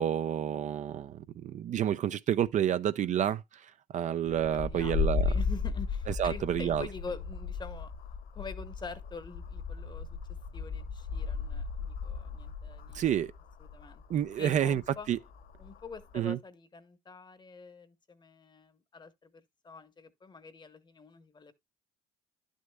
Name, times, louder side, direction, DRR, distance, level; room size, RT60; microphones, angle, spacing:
voice 1, 0.0-5.3 6.2-6.9 12.9-13.3 14.1-14.8 15.1-15.2 16.1-16.4, right 10 dB, 45° right, 0.4 m, -29 dB
sound 1, 4.3-16.2, left 5 dB, 80° left, 2.4 m, -36 dB
voice 2, 4.5-7.9 8.3-10.2 10.5-13.1 13.6-14.0 14.4-15.1 15.6-21.5, left 4 dB, 25° left, 0.9 m, -46 dB
10.5 x 6.4 x 2.2 m
cardioid pair, 110°, 17 cm